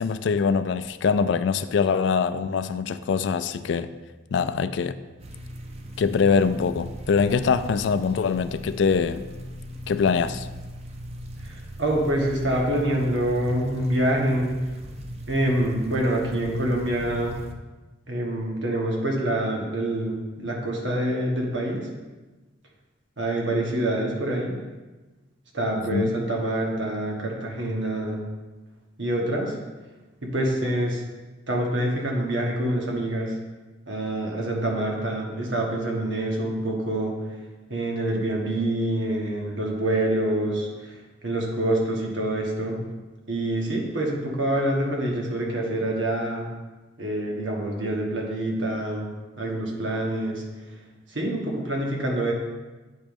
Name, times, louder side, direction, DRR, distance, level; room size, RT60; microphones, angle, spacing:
voice 1, 0.0-3.9 4.3-5.0 6.0-9.2 9.9-10.5 25.9-26.1, left 5 dB, 70° left, 0.3 m, -23 dB
sound 1, 5.2-17.5, right 1 dB, 30° right, 0.5 m, -38 dB
voice 2, 11.4-14.5 15.3-17.4 18.1-21.9 23.2-24.6 25.5-28.2 29.0-29.5 30.2-31.0 31.5-33.3 33.9-37.1 37.7-41.0 41.2-42.8 43.3-46.5 47.0-49.1 49.4-50.4 51.1-52.3, right 1 dB, 75° right, 1.4 m, -26 dB
8.8 x 3.1 x 5.1 m
head